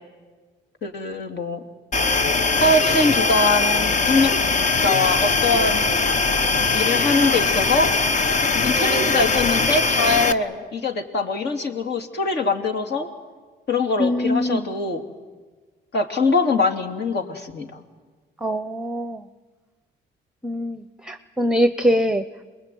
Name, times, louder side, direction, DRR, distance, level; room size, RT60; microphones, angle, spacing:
voice 1, 0.8-1.6 2.6-4.3 4.8-5.9 6.4-7.9 8.5-13.1 13.7-15.0 15.9-17.8, left 3 dB, 60° left, 4 dB, 3.0 m, -23 dB
sound 1, 1.9-10.1, left 1 dB, 90° left, 4.4 m, -35 dB
sound 2, 1.9-10.3, left 3 dB, 40° left, 1.1 m, -21 dB
voice 2, 14.0-14.7 18.4-19.2 20.4-22.2, equal, 5° right, 10 dB, 0.9 m, -23 dB
27.5 x 21.5 x 9.3 m, 1.4 s
cardioid pair, 90°, 20 cm